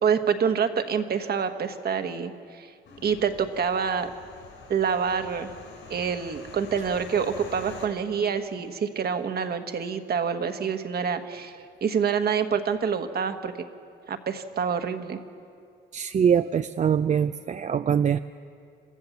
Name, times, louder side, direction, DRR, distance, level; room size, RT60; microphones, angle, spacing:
voice 1, 0.0-2.7 3.0-4.1 4.7-5.5 5.9-13.5 14.1-15.2, right 6 dB, 50° right, 8 dB, 1.4 m, -27 dB
sound 1, 2.8-7.9, left 5 dB, 75° left, 6.3 m, -46 dB
voice 2, 15.9-18.2, right 8 dB, 35° right, 11 dB, 0.4 m, -23 dB
27.0 x 14.5 x 7.2 m, 2.4 s
cardioid pair, 90°, 20 cm